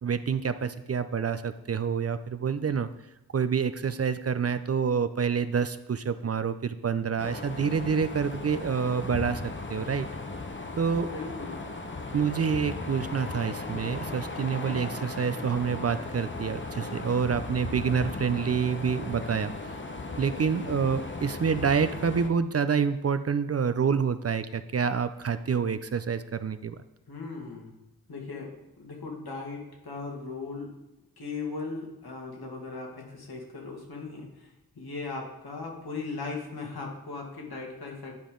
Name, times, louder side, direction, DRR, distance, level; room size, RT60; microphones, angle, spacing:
voice 1, 0.0-2.9 3.3-10.1 10.8-11.1 12.1-19.5 20.2-26.8, right 6 dB, 40° right, 12 dB, 0.4 m, -27 dB
sound 1, 7.2-22.3, left 3 dB, 30° left, 0.8 m, -37 dB
voice 2, 11.1-11.6 20.5-20.8 27.1-27.8 28.1-30.7 31.2-38.1, left 4 dB, 80° left, -1 dB, 1.9 m, -38 dB
10.5 x 5.1 x 3.8 m, 0.96 s
wide cardioid pair, 65°, 37 cm